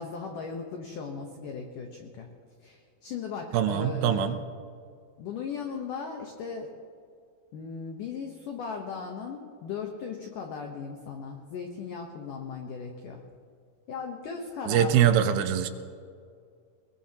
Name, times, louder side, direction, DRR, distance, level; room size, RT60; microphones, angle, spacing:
voice 1, 0.0-2.3 2.6-4.3 5.2-6.7 7.5-13.2 13.9-15.1, left 5 dB, 80° left, 2 dB, 1.9 m, -37 dB
voice 2, 3.5-4.4 14.7-15.7, right 10 dB, 80° right, 9 dB, 2.3 m, -23 dB
22.0 x 19.5 x 2.9 m, 2.2 s
omnidirectional pair, 5.2 m